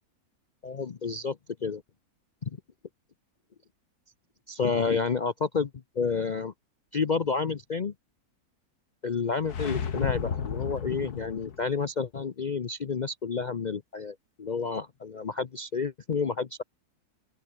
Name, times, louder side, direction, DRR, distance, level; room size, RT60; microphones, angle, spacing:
voice 1, 0.6-1.8 2.4-2.6 4.5-6.5 6.9-7.9 9.0-16.6, left 5 dB, 45° left, 0.6 m, -30 dB
sound 1, 9.4-11.6, left 7 dB, 85° left, 2.2 m, -32 dB
open air
omnidirectional pair, 1.6 m